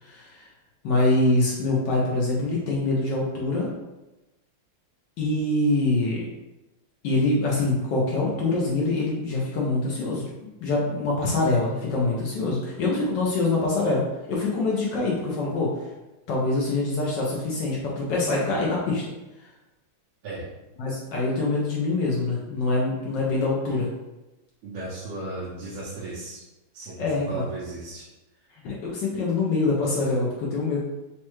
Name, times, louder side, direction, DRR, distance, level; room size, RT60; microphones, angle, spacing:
voice 1, 0.0-0.5 0.8-3.8 5.2-6.3 7.0-10.2 10.6-14.0 14.3-15.7 16.3-19.0 20.8-23.9 27.0-27.5 28.6-30.8, left 2 dB, 70° left, -4 dB, 1.1 m, -24 dB
voice 2, 24.6-26.4 26.7-28.0, right 2 dB, 80° right, -8 dB, 1.6 m, -36 dB
4.2 x 2.3 x 3.0 m, 1.0 s
omnidirectional pair, 2.3 m